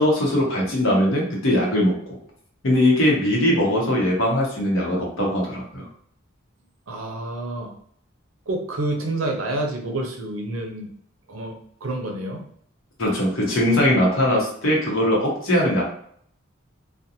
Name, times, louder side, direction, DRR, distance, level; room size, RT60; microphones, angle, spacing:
voice 1, 0.0-2.2 2.6-5.9 13.0-15.8, left 1 dB, 75° left, -2 dB, 0.9 m, -20 dB
voice 2, 6.9-7.8 8.5-10.9 11.3-12.4, right 2 dB, 75° right, 2 dB, 0.6 m, -28 dB
2.5 x 2.2 x 2.8 m, 0.63 s
head